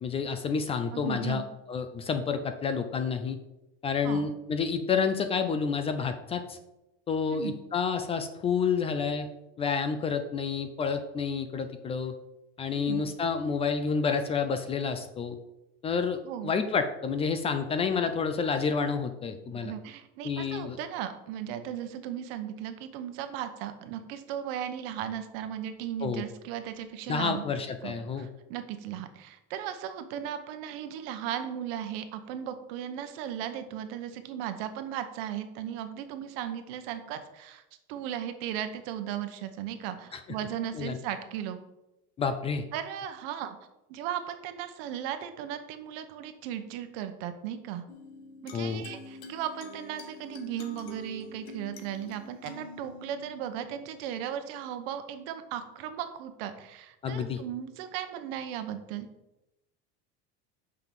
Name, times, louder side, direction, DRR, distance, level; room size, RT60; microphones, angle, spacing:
voice 1, 0.0-1.4 1.7-3.4 3.8-6.6 7.1-9.3 9.6-12.1 12.6-15.4 15.8-19.7 20.2-20.8 26.0-26.2 27.1-28.3 40.1-40.2 40.7-41.0 42.2-42.6 48.5-48.8 57.0-57.4, left 5 dB, 20° left, 8 dB, 0.4 m, -29 dB
voice 2, 0.9-1.5 4.0-4.3 7.3-7.5 12.7-13.0 16.2-16.5 18.0-18.1 19.4-27.4 27.8-37.6 37.9-41.6 42.7-43.6 43.9-47.8 48.4-59.1, right 10 dB, 70° right, 9 dB, 1.1 m, -36 dB
sound 1, 47.9-54.9, left 3 dB, 85° left, 1.5 m, -47 dB
6.0 x 5.8 x 7.0 m, 0.93 s
cardioid pair, 165°, 30 cm